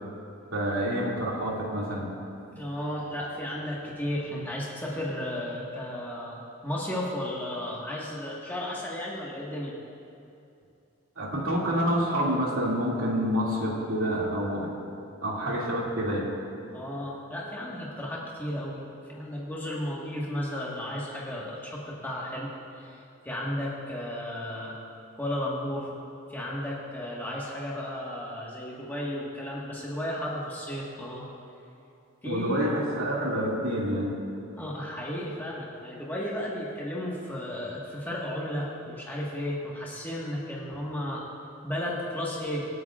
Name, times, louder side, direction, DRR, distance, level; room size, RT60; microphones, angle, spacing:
voice 1, 0.5-2.1 11.2-14.7 15.2-16.2 32.2-34.2, equal, 70° right, -4 dB, 2.4 m, -28 dB
voice 2, 2.3-9.7 15.4-15.6 16.7-24.7 25.1-25.9 26.3-31.3 32.2-32.7 34.5-41.3 41.6-42.7, left 1 dB, 10° left, -6 dB, 1.5 m, -34 dB
26.0 x 9.1 x 2.5 m, 2.6 s
head